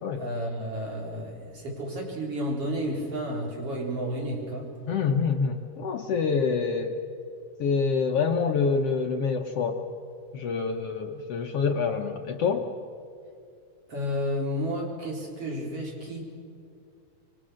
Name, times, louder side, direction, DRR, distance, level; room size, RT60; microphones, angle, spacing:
voice 1, 0.2-4.7 13.9-16.3, equal, 40° right, -1 dB, 5.0 m, -31 dB
voice 2, 4.9-6.9 7.6-9.9 10.3-12.7, left 5 dB, 75° left, 3 dB, 1.4 m, -26 dB
27.0 x 23.0 x 6.4 m, 2.3 s
omnidirectional pair, 4.0 m